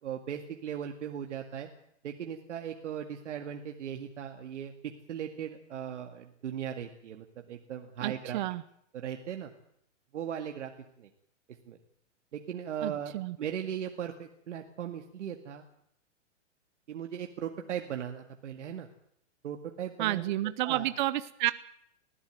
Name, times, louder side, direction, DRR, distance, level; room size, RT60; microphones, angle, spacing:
voice 1, 0.0-1.7 2.0-4.7 5.1-8.4 8.9-9.5 10.1-10.7 11.0-11.1 11.7-11.8 12.3-15.6 16.9-18.9 19.4-20.3 20.6-20.9, right 9 dB, 70° right, 4 dB, 2.2 m, -38 dB
voice 2, 8.0-8.6 12.8-13.4 20.0-21.5, right 16 dB, 40° right, 14 dB, 0.8 m, -30 dB
20.0 x 15.5 x 9.1 m, 0.72 s
hypercardioid pair, 150°, 37 cm